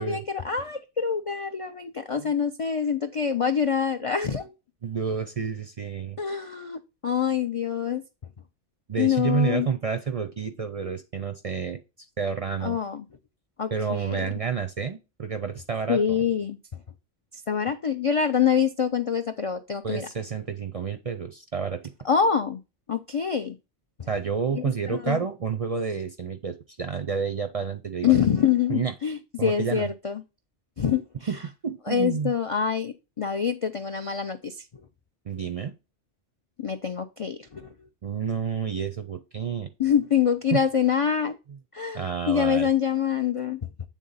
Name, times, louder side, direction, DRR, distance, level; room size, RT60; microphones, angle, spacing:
voice 1, 0.0-4.5 6.2-8.0 9.0-9.7 12.6-13.0 13.6-14.3 15.9-16.6 17.5-20.1 22.0-22.6 22.9-23.6 24.5-25.2 28.0-30.2 30.8-31.0 31.9-34.5 36.6-37.7 39.8-41.4 41.7-43.6, left 7 dB, 55° left, 8 dB, 0.3 m, -25 dB
voice 2, 4.8-6.2 8.9-11.8 12.2-12.8 13.7-16.2 19.8-21.8 24.1-28.2 28.7-28.9 29.4-29.9 31.3-31.4 31.6-32.3 35.3-35.7 38.0-39.7 40.5-40.6 41.9-42.7, right 6 dB, 45° right, 9 dB, 0.5 m, -29 dB
8.2 x 3.7 x 4.0 m, 0.28 s
omnidirectional pair, 1.2 m